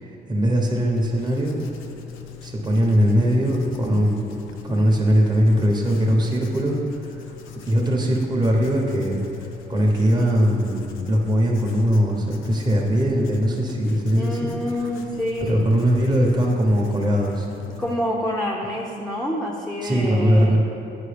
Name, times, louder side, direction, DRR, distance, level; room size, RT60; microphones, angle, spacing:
voice 1, 0.0-1.6 2.4-4.3 4.6-6.8 7.5-9.2 9.7-14.5 15.5-17.5 19.8-20.6, equal, 20° right, -1 dB, 1.0 m, -20 dB
Writing, 1.0-18.0, left 9 dB, 90° left, 0.5 m, -42 dB
voice 2, 14.1-15.6 17.8-20.6, equal, ahead, -2 dB, 0.6 m, -27 dB
9.2 x 4.7 x 3.4 m, 2.9 s
cardioid pair, 90°, 20 cm